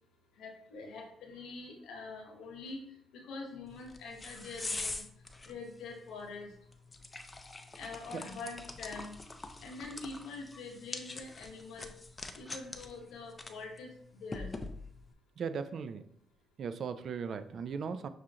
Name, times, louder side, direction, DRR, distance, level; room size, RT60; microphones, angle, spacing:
voice 1, 0.4-2.8 3.1-5.0 5.4-6.5 7.8-9.1 9.6-11.9 12.3-14.5, left 3 dB, 80° left, 2 dB, 1.0 m, -45 dB
sound 1, 3.7-15.1, left 2 dB, 20° left, 0.4 m, -45 dB
voice 2, 15.4-16.0 16.6-18.1, right 6 dB, 60° right, 12 dB, 0.3 m, -37 dB
6.1 x 2.4 x 2.8 m, 0.67 s
cardioid pair, 90°, 0 cm